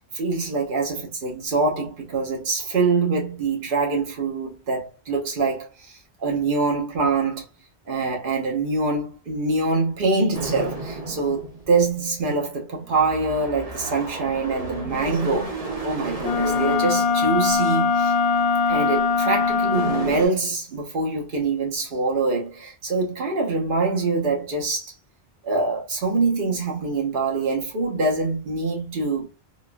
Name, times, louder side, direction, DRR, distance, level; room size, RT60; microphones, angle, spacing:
voice 1, 0.1-7.5 7.9-15.6 15.8-18.1 18.7-24.9 25.4-29.3, right 3 dB, 55° right, 1.2 m, -24 dB
sound 1, 10.3-12.0 12.8-17.6 18.3-18.5 19.2-19.3 19.6-20.3, right 3 dB, 35° right, 1.0 m, -33 dB
Wind instrument woodwind instrument, 16.2-20.3, left 4 dB, 60° left, 0.7 m, -21 dB
3.7 x 2.4 x 2.5 m
omnidirectional pair, 1.1 m